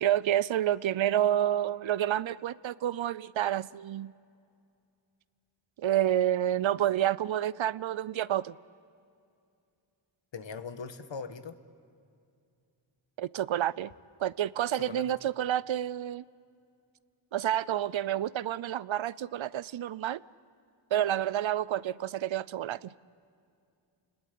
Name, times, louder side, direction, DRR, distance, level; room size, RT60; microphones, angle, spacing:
voice 1, 0.0-4.1 5.8-8.5 13.2-13.9 14.2-16.2 17.3-20.2 20.9-22.9, right 11 dB, 75° right, 20 dB, 0.6 m, -29 dB
voice 2, 10.3-11.6 14.7-15.1, left 5 dB, 70° left, 10 dB, 1.4 m, -40 dB
29.5 x 20.5 x 8.4 m, 2.5 s
wide cardioid pair, 95°, 47 cm